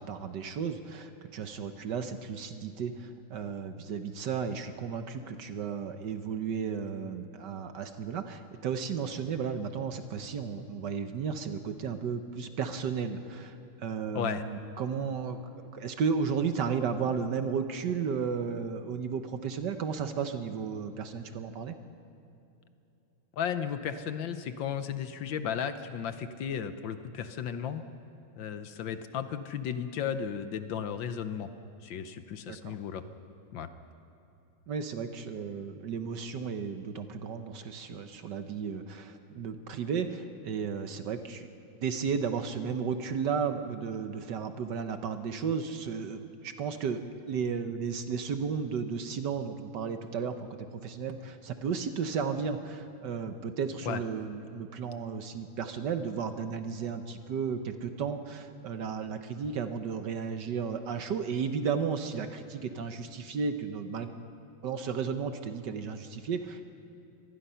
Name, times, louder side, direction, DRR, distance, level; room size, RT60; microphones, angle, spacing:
voice 1, 0.0-21.7 32.5-32.8 34.7-41.5 41.8-64.1 64.6-66.6, right 6 dB, 60° right, 8 dB, 1.4 m, -34 dB
voice 2, 23.4-27.8 28.4-31.5 31.8-33.0 33.5-33.7 53.8-54.0, left 8 dB, 70° left, 10 dB, 1.5 m, -34 dB
24.5 x 19.0 x 5.7 m, 2.7 s
omnidirectional pair, 2.3 m